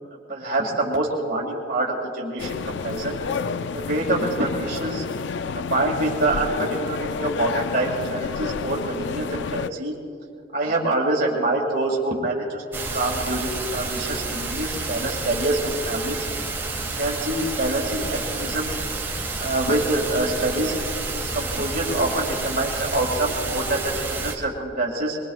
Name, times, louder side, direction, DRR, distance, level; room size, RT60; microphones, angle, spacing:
voice 1, 0.3-3.2 3.7-5.0 5.5-9.9 10.5-16.2 16.9-18.7 19.4-20.8 21.1-25.2, right 2 dB, 50° right, -3 dB, 2.2 m, -25 dB
sound 1, 2.4-9.7, left 5 dB, 65° left, 0.4 m, -30 dB
sound 2, 12.7-24.3, right 3 dB, 10° right, 1.7 m, -29 dB
23.5 x 22.0 x 2.4 m, 2.4 s
head